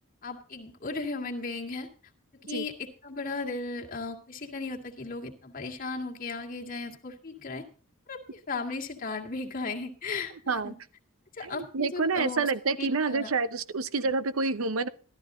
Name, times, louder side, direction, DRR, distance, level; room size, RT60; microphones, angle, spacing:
voice 1, 0.2-1.9 2.5-7.6 8.1-10.7 11.3-12.5 12.8-13.3, left 3 dB, 40° left, 1 dB, 2.0 m, -36 dB
voice 2, 11.4-14.9, right 4 dB, 85° right, 14 dB, 0.8 m, -28 dB
13.5 x 12.5 x 3.8 m, 0.38 s
head